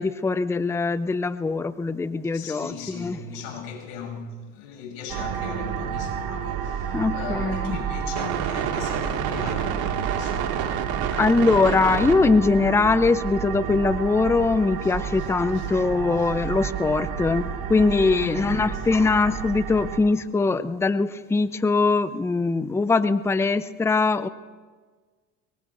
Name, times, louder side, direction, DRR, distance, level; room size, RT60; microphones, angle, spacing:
voice 1, 0.0-3.2 6.9-7.8 11.2-24.3, left 3 dB, 5° left, 0.6 m, -22 dB
voice 2, 2.3-10.9 14.8-15.7 16.1-16.3 18.1-18.9, left 5 dB, 70° left, 6.9 m, -38 dB
sound 1, 5.1-20.0, right 8 dB, 60° right, 2.1 m, -29 dB
23.5 x 23.0 x 2.6 m
hypercardioid pair, 90°, 41 cm